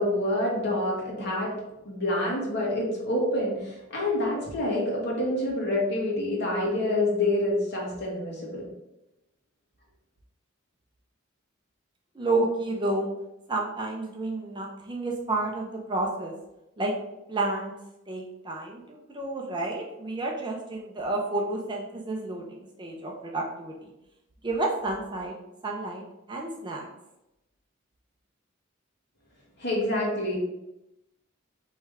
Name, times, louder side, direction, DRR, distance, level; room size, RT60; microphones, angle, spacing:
voice 1, 0.0-1.5 1.8-8.6 29.6-30.3, left 1 dB, 50° left, -3 dB, 1.6 m, -27 dB
voice 2, 12.2-13.1 13.5-16.3 16.8-16.9 17.3-17.7 18.1-23.7 24.4-25.3 25.6-26.0 26.3-26.9, right 2 dB, 20° right, 0 dB, 0.5 m, -30 dB
3.4 x 3.2 x 4.8 m, 0.90 s
head